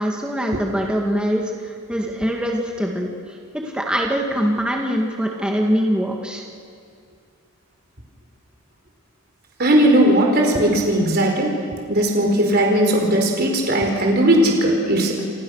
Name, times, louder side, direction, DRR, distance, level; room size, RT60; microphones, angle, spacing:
voice 1, 0.0-6.4, equal, 5° right, 0 dB, 2.0 m, -23 dB
voice 2, 9.6-11.6 11.9-15.2, right 1 dB, 45° right, 1 dB, 4.5 m, -17 dB
29.5 x 27.0 x 6.5 m, 2.3 s
head